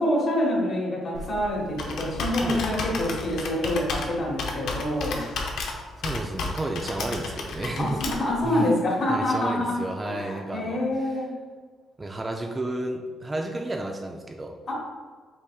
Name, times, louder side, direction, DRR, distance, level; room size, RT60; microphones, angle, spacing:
voice 1, 0.0-5.2 7.8-9.7 10.0-11.3 14.7-14.8, left 1 dB, 55° left, -3 dB, 1.5 m, -26 dB
Computer keyboard, 1.1-8.5, left 3 dB, 75° left, 0.7 m, -33 dB
voice 2, 2.4-2.8 6.0-8.0 8.4-8.7 9.1-11.2 12.0-14.5, right 2 dB, 25° right, 2 dB, 0.4 m, -32 dB
5.4 x 3.6 x 2.3 m, 1.5 s
cardioid pair, 90°, 0 cm